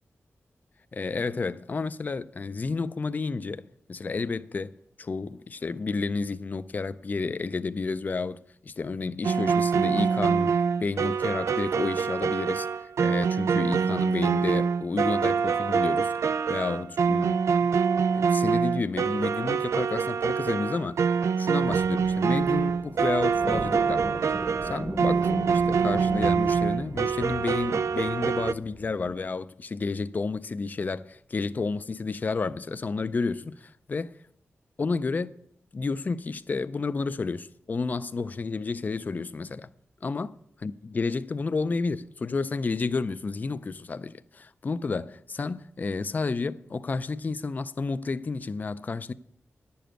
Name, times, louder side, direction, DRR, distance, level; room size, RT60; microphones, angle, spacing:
voice 1, 0.9-4.7 5.0-16.1 16.5-17.7 18.1-21.0 21.4-24.1 24.6-34.2 34.8-35.3 35.7-39.7 40.0-40.3 40.6-49.1, left 4 dB, 35° left, 0.4 m, -31 dB
sound 1, 9.2-28.5, right 6 dB, 80° right, 0.3 m, -25 dB
sound 2, 21.6-29.2, right 1 dB, 30° right, 0.9 m, -38 dB
11.0 x 7.0 x 7.6 m
wide cardioid pair, 140°, 5 cm